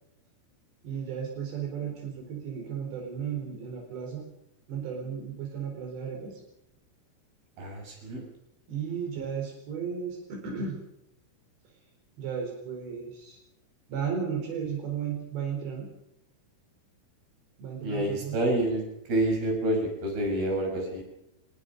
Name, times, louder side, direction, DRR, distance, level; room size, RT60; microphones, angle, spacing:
voice 1, 0.8-4.2 4.7-6.4 8.7-10.8 12.2-13.4 13.9-15.9 17.6-18.4, right 7 dB, 85° right, 1 dB, 6.5 m, -34 dB
voice 2, 7.6-8.2 17.8-18.8 19.1-21.0, right 1 dB, 65° right, 2 dB, 7.9 m, -28 dB
24.5 x 22.0 x 5.3 m, 0.81 s
omnidirectional pair, 4.9 m